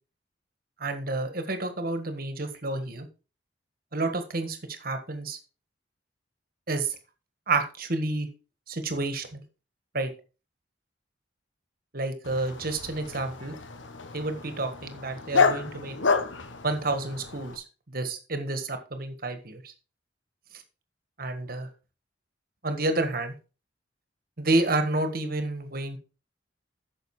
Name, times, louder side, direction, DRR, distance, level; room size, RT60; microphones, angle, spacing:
voice 1, 0.8-3.1 3.9-5.4 6.7-6.9 7.5-8.3 8.7-9.4 9.9-10.1 11.9-13.6 14.1-16.0 16.6-19.6 21.2-21.7 22.6-23.3 24.4-26.0, right 2 dB, 50° right, 8 dB, 1.6 m, -29 dB
Dog, 12.2-17.6, left 4 dB, 90° left, 1.0 m, -29 dB
9.3 x 6.6 x 4.8 m, 0.33 s
head